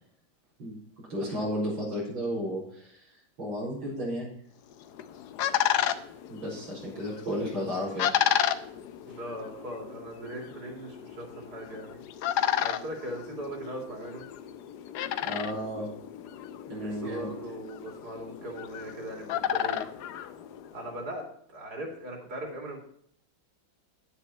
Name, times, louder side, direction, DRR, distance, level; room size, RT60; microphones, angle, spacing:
voice 1, 1.1-3.0 3.4-4.3 6.3-8.1 15.2-15.9 16.7-17.3, equal, 90° right, -5 dB, 5.1 m, -33 dB
sound 1, 4.7-21.0, left 10 dB, 65° left, 1.1 m, -33 dB
voice 2, 9.0-12.0 12.6-14.3 16.9-19.9 20.7-22.8, right 1 dB, 55° right, 1 dB, 3.5 m, -39 dB
10.0 x 9.4 x 4.3 m, 0.65 s
omnidirectional pair, 2.1 m